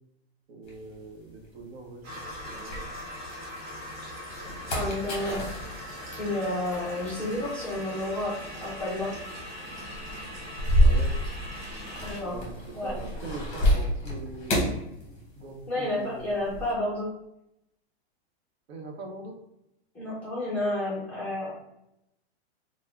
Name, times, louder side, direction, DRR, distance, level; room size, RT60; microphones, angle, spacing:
voice 1, 0.5-2.9 10.8-11.1 12.2-14.7 15.4-16.6 18.7-19.4, right 2 dB, 70° right, 2 dB, 0.8 m, -42 dB
sound 1, 0.7-3.4 3.9-15.7 15.9-16.7, equal, 20° left, 0.9 m, -30 dB
sound 2, 2.0-12.2, left 1 dB, 45° right, 1.2 m, -41 dB
voice 2, 4.7-5.5 6.2-9.1 12.0-12.4 12.7-12.9 15.7-17.1 19.9-21.5, left 1 dB, 5° left, -9 dB, 0.4 m, -30 dB
3.4 x 2.1 x 3.4 m, 0.83 s
supercardioid pair, 160°, 32 cm